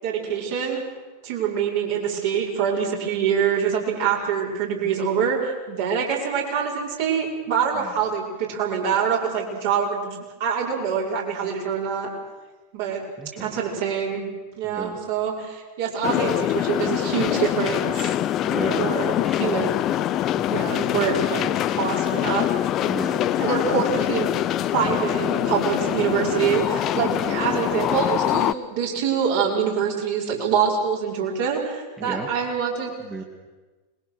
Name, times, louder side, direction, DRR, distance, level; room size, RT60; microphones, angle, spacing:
voice 1, 0.0-0.8 1.2-12.1 12.7-13.0 13.4-14.3 14.6-18.1 18.8-19.7 20.5-22.5 23.4-24.3 24.7-32.9, right 7 dB, 50° right, -2 dB, 5.8 m, -25 dB
voice 2, 13.2-13.6 14.6-15.0 18.4-19.6 20.4-20.9 22.8-23.2 23.7-23.8 26.9-27.3 32.0-32.3 33.1-33.2, right 3 dB, 15° right, 1 dB, 2.5 m, -34 dB
sound 1, 16.0-28.5, left 12 dB, 35° left, 0.7 m, -24 dB
26.0 x 21.5 x 6.6 m, 1.2 s
figure-of-eight pair, 90°, 0 cm